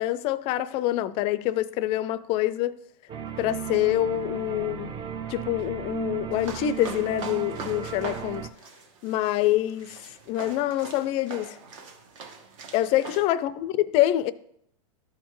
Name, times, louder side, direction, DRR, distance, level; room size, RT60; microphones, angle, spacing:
voice 1, 0.0-2.7 3.4-5.0 5.3-8.5 9.0-11.6 12.7-14.3, left 14 dB, 35° left, 0.4 m, -26 dB
sound 1, 3.1-8.5, right 7 dB, 25° right, 0.5 m, -35 dB
sound 2, 6.3-13.2, right 5 dB, 65° right, 1.3 m, -42 dB
12.5 x 4.4 x 3.0 m
supercardioid pair, 135°, 18 cm